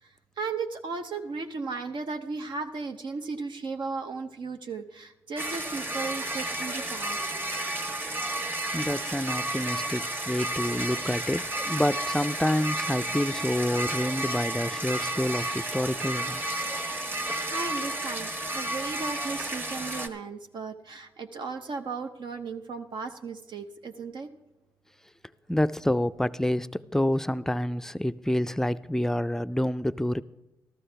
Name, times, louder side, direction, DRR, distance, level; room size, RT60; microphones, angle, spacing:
voice 1, 0.0-7.3 8.0-8.1 16.6-16.9 17.5-24.3, right 4 dB, 60° right, 5 dB, 0.8 m, -36 dB
sound 1, 5.4-20.1, right 1 dB, 25° right, 1.4 m, -32 dB
voice 2, 8.7-16.6 25.5-30.2, left 1 dB, 5° left, 13 dB, 0.4 m, -28 dB
14.0 x 12.5 x 3.4 m, 0.94 s
supercardioid pair, 50°, 9 cm